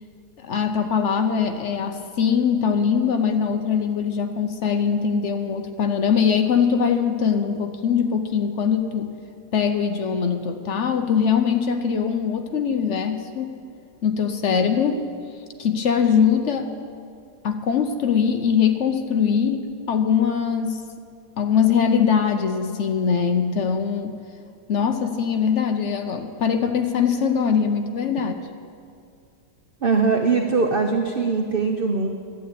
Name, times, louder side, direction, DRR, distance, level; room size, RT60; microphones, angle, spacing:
voice 1, 0.4-9.1 9.5-13.6 14.0-15.0 15.6-16.7 17.4-20.8 21.4-24.2 24.7-28.3, left 7 dB, 55° left, 6 dB, 0.8 m, -22 dB
voice 2, 29.8-32.1, right 4 dB, 55° right, 3 dB, 0.6 m, -21 dB
12.0 x 9.1 x 8.3 m, 2.3 s
omnidirectional pair, 1.8 m